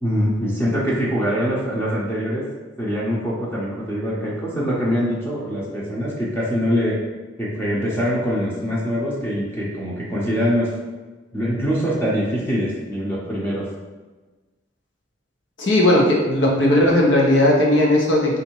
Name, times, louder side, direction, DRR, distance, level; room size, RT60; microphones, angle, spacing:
voice 1, 0.0-2.4 2.8-7.0 7.4-10.7 11.3-13.7, equal, 10° left, -6 dB, 0.8 m, -23 dB
voice 2, 15.6-18.4, left 1 dB, 70° left, -2 dB, 1.0 m, -17 dB
4.0 x 2.7 x 4.5 m, 1.3 s
head